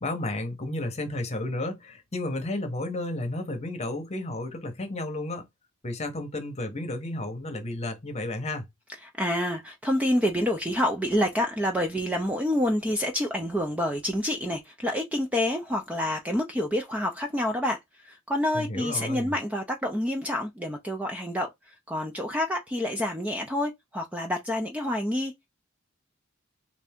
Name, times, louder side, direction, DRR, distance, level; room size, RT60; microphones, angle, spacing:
voice 1, 0.0-5.4 5.8-8.6 18.5-19.3, left 1 dB, 30° left, 0.9 m, -32 dB
voice 2, 9.0-25.5, left 1 dB, 5° right, 0.4 m, -28 dB
3.3 x 2.6 x 3.5 m
head